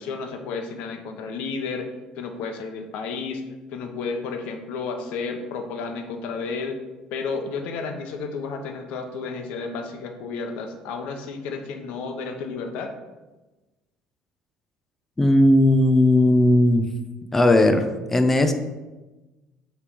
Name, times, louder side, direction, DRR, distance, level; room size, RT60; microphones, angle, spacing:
voice 1, 0.0-3.4 3.7-6.8 7.1-12.9, left 4 dB, 75° left, 5 dB, 1.0 m, -32 dB
voice 2, 15.2-16.9 17.3-18.5, left 1 dB, 10° left, 6 dB, 0.6 m, -17 dB
7.3 x 3.4 x 5.2 m, 1.1 s
cardioid pair, 130°, 2 cm